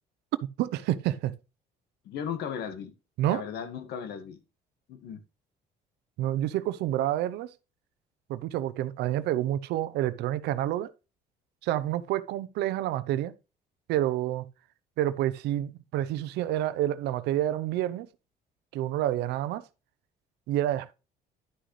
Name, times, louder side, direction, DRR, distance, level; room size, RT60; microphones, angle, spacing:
voice 1, 0.6-1.3 3.2-3.4 6.2-7.5 8.3-10.9 11.6-13.3 13.9-14.5 15.0-18.1 18.7-19.7 20.5-20.9, right 13 dB, 85° right, 0.7 m, -28 dB
voice 2, 2.0-2.9 3.3-4.4 4.9-5.2, left 8 dB, 75° left, 1.7 m, -36 dB
11.0 x 6.4 x 3.2 m
cardioid pair, 110°, 17 cm